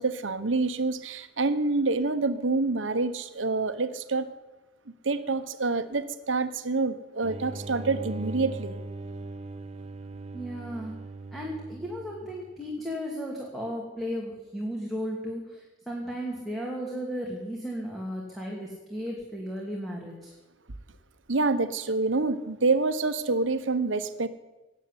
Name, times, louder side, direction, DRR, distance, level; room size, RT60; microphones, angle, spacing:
voice 1, 0.0-4.3 5.0-8.8 21.3-24.3, right 3 dB, 85° right, 11 dB, 1.0 m, -27 dB
sound 1, 7.2-12.6, right 2 dB, 35° right, 0.6 m, -39 dB
voice 2, 10.3-11.0 11.3-20.3, equal, ahead, -2 dB, 2.3 m, -35 dB
18.0 x 8.3 x 9.8 m, 1.1 s
head